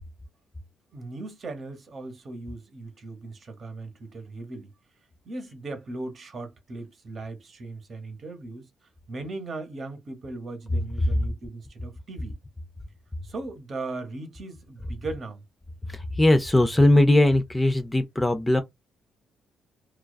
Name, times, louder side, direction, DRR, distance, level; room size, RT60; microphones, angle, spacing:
voice 1, 0.9-4.7 5.2-8.7 9.1-12.4 13.2-15.4, right 2 dB, 50° right, 0.9 m, -38 dB
voice 2, 15.9-18.6, left 1 dB, 15° left, 0.4 m, -20 dB
2.4 x 2.3 x 2.2 m
cardioid pair, 90°, 0 cm